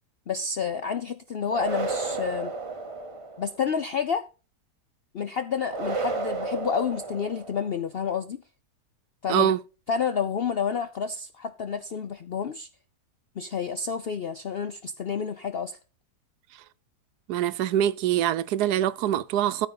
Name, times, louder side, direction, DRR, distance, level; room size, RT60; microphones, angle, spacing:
voice 1, 0.3-2.5 3.4-4.3 5.1-8.4 9.2-9.5 9.9-12.7 13.4-15.8, left 6 dB, 60° left, 0.6 m, -29 dB
sound 1, 1.5-3.6 5.7-7.8, right 3 dB, 25° right, 0.8 m, -32 dB
voice 2, 17.3-19.7, right 11 dB, 80° right, 1.2 m, -24 dB
13.5 x 4.6 x 5.5 m
omnidirectional pair, 1.7 m